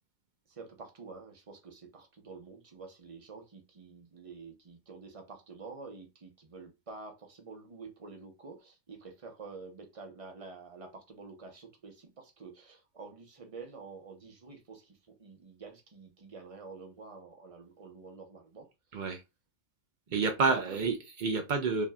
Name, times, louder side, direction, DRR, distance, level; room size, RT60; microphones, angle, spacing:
voice 1, 0.5-18.7 20.1-20.8, right 4 dB, 30° right, 0.7 m, -48 dB
voice 2, 20.1-21.8, right 4 dB, 70° right, 0.4 m, -29 dB
5.2 x 2.7 x 2.3 m
omnidirectional pair, 1.5 m